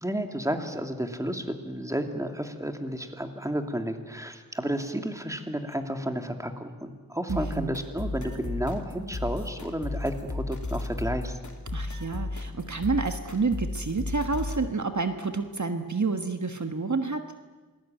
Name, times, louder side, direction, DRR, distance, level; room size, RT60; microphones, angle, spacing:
voice 1, 0.0-11.4, equal, 10° right, 5 dB, 2.7 m, -32 dB
sound 1, 7.3-14.7, left 2 dB, 55° left, 2.9 m, -34 dB
voice 2, 7.3-7.8 11.7-17.2, right 4 dB, 55° right, 7 dB, 1.5 m, -29 dB
27.5 x 20.0 x 9.2 m, 1.3 s
wide cardioid pair, 55°, 35 cm